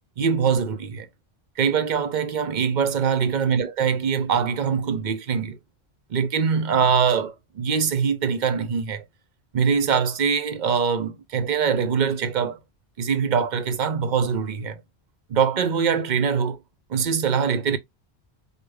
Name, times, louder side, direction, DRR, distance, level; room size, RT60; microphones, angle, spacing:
voice 1, 0.2-1.1 1.6-5.6 6.1-9.0 9.5-12.6 13.0-14.8 15.3-16.6 16.9-17.8, right 6 dB, 55° right, 0.6 m, -23 dB
5.1 x 2.1 x 3.3 m
omnidirectional pair, 1.1 m